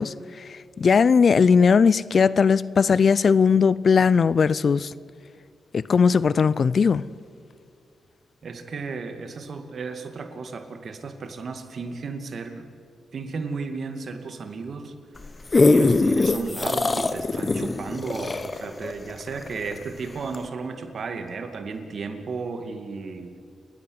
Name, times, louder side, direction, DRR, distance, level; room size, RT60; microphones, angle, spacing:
voice 1, 0.0-4.9 5.7-7.0, left 5 dB, 55° left, 0.6 m, -19 dB
voice 2, 8.4-12.7 13.1-14.9 15.7-23.3, right 4 dB, 60° right, 2.3 m, -34 dB
sound 1, 15.2-19.8 20.3-20.4, left 3 dB, 35° left, 1.1 m, -21 dB
29.5 x 11.0 x 9.6 m
cardioid pair, 70°, 0 cm